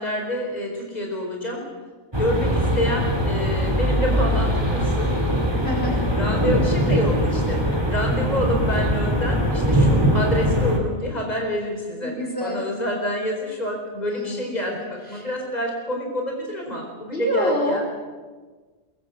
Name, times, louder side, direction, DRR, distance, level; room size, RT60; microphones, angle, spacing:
voice 1, 0.0-1.7 2.1-5.1 5.5-5.6 5.9-12.1 12.4-17.8, left 1 dB, 30° left, 1 dB, 4.8 m, -28 dB
sound 1, 2.1-10.8, equal, 20° right, 3.5 m, -21 dB
voice 2, 5.6-6.0 12.0-12.6 14.1-14.5 15.1-15.2 17.1-17.8, left 1 dB, 45° left, -2 dB, 4.9 m, -26 dB
22.5 x 22.5 x 7.8 m, 1.4 s
omnidirectional pair, 1.4 m